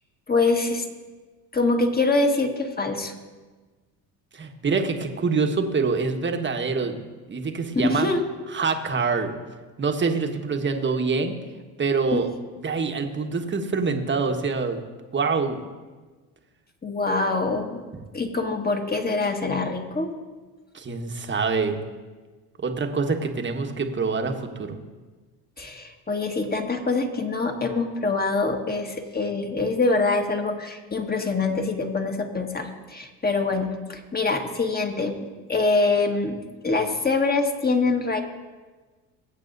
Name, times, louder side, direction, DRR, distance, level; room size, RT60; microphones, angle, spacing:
voice 1, 0.3-0.8 1.5-3.1 7.9-8.3 12.1-12.2 16.8-17.8 18.1-20.1 25.6-36.4 36.6-38.2, left 3 dB, 20° left, 3 dB, 1.7 m, -24 dB
voice 2, 4.3-7.0 7.3-8.1 8.5-9.3 9.8-11.4 11.8-12.3 12.6-14.8 15.1-15.6 20.7-21.8 22.6-24.8, right 4 dB, 25° right, 5 dB, 1.4 m, -25 dB
21.0 x 8.2 x 2.7 m, 1.3 s
hypercardioid pair, 70°, 46 cm